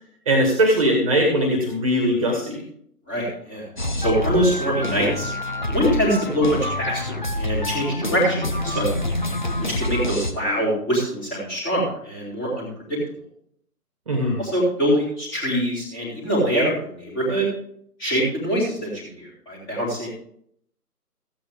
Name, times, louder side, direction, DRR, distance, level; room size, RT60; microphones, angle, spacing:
voice 1, 0.3-2.6 14.1-14.4, equal, 20° right, 2 dB, 1.8 m, -20 dB
voice 2, 3.1-3.6 4.0-5.3 5.7-9.0 9.8-13.0 14.4-17.5 18.0-20.1, equal, 10° left, -5 dB, 2.4 m, -24 dB
sound 1, 3.8-10.3, left 1 dB, 30° left, 0.6 m, -27 dB
14.0 x 8.4 x 3.6 m, 0.66 s
figure-of-eight pair, 155°, 47 cm